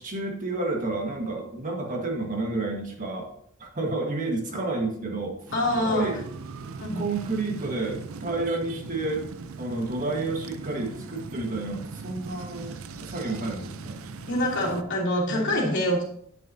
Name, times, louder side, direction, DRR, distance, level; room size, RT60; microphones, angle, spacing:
voice 1, 0.0-3.3 3.6-5.4 5.8-6.2 6.6-6.7 6.9-9.3 9.6-14.0 15.3-15.5, right 2 dB, 40° right, 1 dB, 1.6 m, -30 dB
voice 2, 5.5-6.1 6.8-7.0 14.3-16.0, left 1 dB, 60° left, -4 dB, 2.8 m, -25 dB
sound 1, 5.5-14.8, right 4 dB, 85° right, 0.6 m, -40 dB
9.1 x 8.9 x 2.7 m, 0.66 s
head